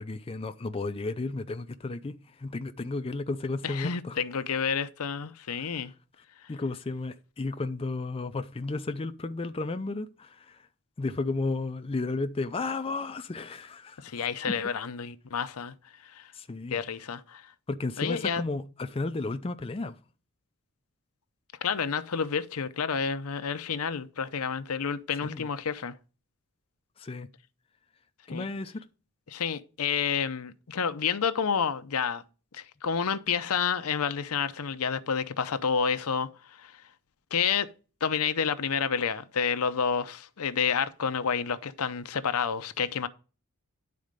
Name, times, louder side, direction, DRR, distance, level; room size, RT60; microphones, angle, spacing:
voice 1, 0.0-4.2 5.5-5.7 6.5-10.7 11.0-14.3 16.3-16.8 17.7-20.0 25.2-25.5 27.0-27.3 28.3-28.8, left 3 dB, 25° left, 0.5 m, -33 dB
voice 2, 3.6-5.9 14.0-15.7 16.0-16.3 16.7-17.4 18.0-18.4 21.6-25.9 28.3-28.5 29.3-32.2 32.5-36.8 37.3-37.7 38.0-43.1, left 6 dB, 80° left, 0.7 m, -29 dB
10.5 x 4.2 x 5.1 m
head